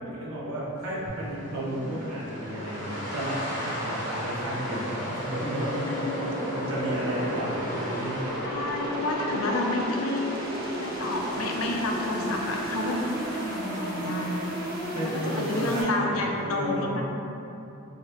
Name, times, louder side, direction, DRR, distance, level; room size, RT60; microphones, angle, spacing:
voice 1, 0.0-5.7 6.5-8.2 14.9-17.0, right 1 dB, 90° right, -6 dB, 1.1 m, -33 dB
sound 1, 0.8-16.4, left 1 dB, 60° left, 1.0 m, -37 dB
sound 2, 1.1-15.8, right 1 dB, 45° right, 0.6 m, -35 dB
voice 2, 5.8-6.3 8.4-10.3 10.8-13.0 13.3-14.4 14.9-17.0, left 2 dB, 90° left, 1 dB, 0.5 m, -30 dB
3.1 x 2.9 x 4.4 m, 2.9 s
head